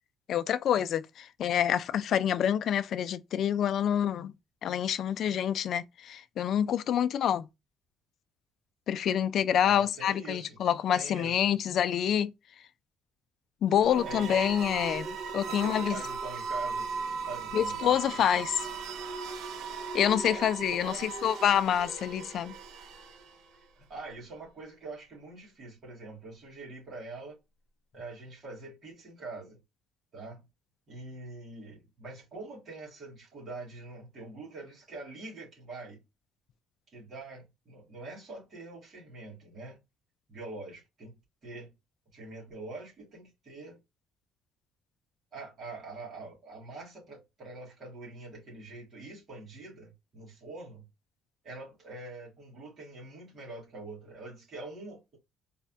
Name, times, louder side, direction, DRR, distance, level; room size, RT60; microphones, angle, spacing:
voice 1, 0.3-4.3 4.6-7.5 8.9-12.3 13.6-16.0 17.5-18.7 19.9-22.6, left 9 dB, 50° left, 0.3 m, -27 dB
voice 2, 9.7-10.6 10.9-11.6 14.0-14.5 15.5-16.9 17.3-18.3 20.2-21.1 23.8-27.4 27.9-29.6 30.1-30.5 30.9-36.0 36.9-39.8 40.3-41.7 42.1-43.8 45.3-50.9 51.4-55.2, right 3 dB, 35° right, 2.1 m, -44 dB
sound 1, 13.7-23.6, right 5 dB, 70° right, 0.5 m, -37 dB
4.1 x 2.2 x 2.7 m
cardioid pair, 145°, 0 cm